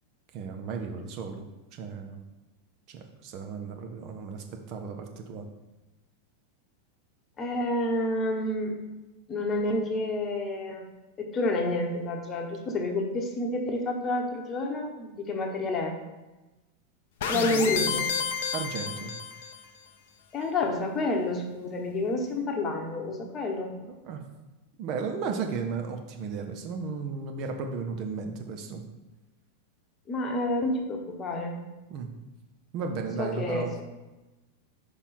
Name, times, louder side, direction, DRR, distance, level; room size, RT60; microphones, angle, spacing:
voice 1, 0.3-1.4 1.7-2.2 2.9-5.5 17.3-17.9 18.5-19.1 23.9-24.2 24.8-28.8 31.9-32.1 32.7-33.8, right 5 dB, 40° right, 4 dB, 0.7 m, -35 dB
voice 2, 7.4-8.7 9.3-10.9 11.2-16.0 17.3-18.1 20.3-23.7 30.1-31.7 33.2-33.8, left 2 dB, 25° left, 3 dB, 1.0 m, -29 dB
sound 1, 17.2-19.6, left 6 dB, 55° left, 0.6 m, -30 dB
5.4 x 4.7 x 4.2 m, 1.1 s
figure-of-eight pair, 90°, 0 cm